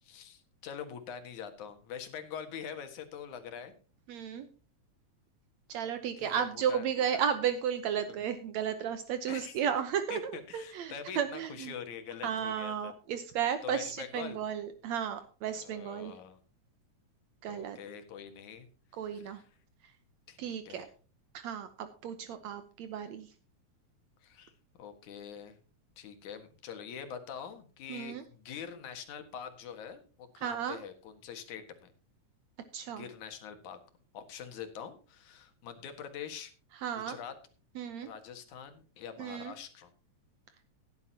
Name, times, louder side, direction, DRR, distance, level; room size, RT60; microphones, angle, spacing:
voice 1, 0.0-3.7 6.2-6.8 7.1-7.2 8.1-8.2 9.2-9.5 10.1-12.9 13.6-14.4 15.5-16.4 17.5-18.7 19.1-19.5 20.3-20.9 24.2-24.5 24.8-25.6 26.0-31.9 32.9-33.8 34.1-36.5 36.9-37.3 38.0-39.9, left 7 dB, 80° left, 7 dB, 3.1 m, -44 dB
voice 2, 4.1-4.5 5.7-11.7 12.2-16.1 17.4-17.8 19.0-19.4 20.4-20.9 21.3-23.3 27.9-28.2 30.4-30.8 32.7-33.1 36.8-37.2 37.8-38.1 39.2-39.5, right 8 dB, 75° right, 9 dB, 2.1 m, -34 dB
17.0 x 11.0 x 2.8 m, 0.37 s
omnidirectional pair, 3.3 m